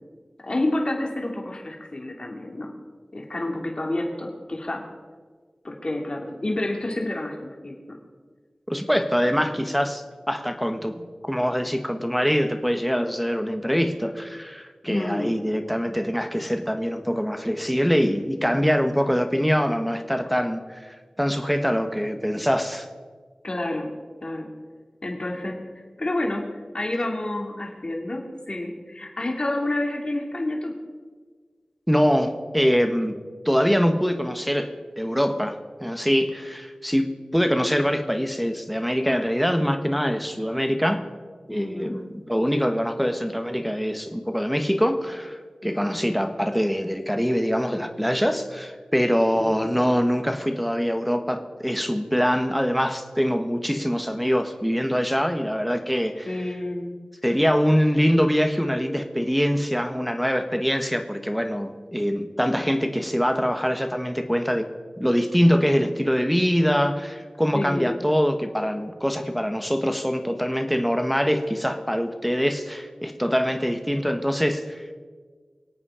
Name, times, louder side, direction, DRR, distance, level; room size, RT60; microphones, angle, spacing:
voice 1, 0.4-2.7 3.1-4.8 5.6-8.0 9.4-9.7 14.8-15.4 23.4-23.9 24.2-24.5 25.0-30.7 41.5-42.0 45.6-46.0 49.4-49.7 56.2-56.9 67.5-68.0, left 1 dB, 45° left, 1 dB, 2.7 m, -29 dB
voice 2, 8.7-22.9 31.9-33.2 33.4-34.7 35.0-41.0 41.5-56.3 57.2-64.7 65.0-74.9, equal, ahead, 6 dB, 1.4 m, -24 dB
25.5 x 8.7 x 5.0 m, 1.5 s
wide cardioid pair, 70°, 2 cm